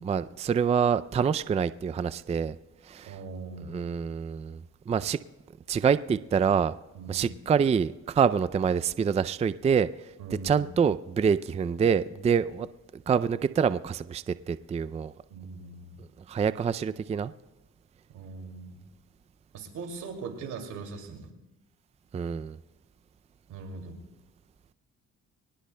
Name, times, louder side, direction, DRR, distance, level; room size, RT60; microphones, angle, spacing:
voice 1, 0.0-2.6 2.8-3.1 3.6-4.6 4.9-5.2 5.7-6.7 7.1-10.1 10.4-12.7 12.9-15.1 16.0-17.3 22.1-22.6, right 6 dB, 20° right, 15 dB, 0.4 m, -26 dB
voice 2, 3.0-3.8 6.9-7.3 10.2-10.7 15.3-16.0 18.1-18.9 19.5-21.3 23.5-24.0, right 4 dB, 85° right, 3 dB, 2.5 m, -40 dB
24.5 x 18.5 x 2.2 m, 1.1 s
cardioid pair, 90°, 30 cm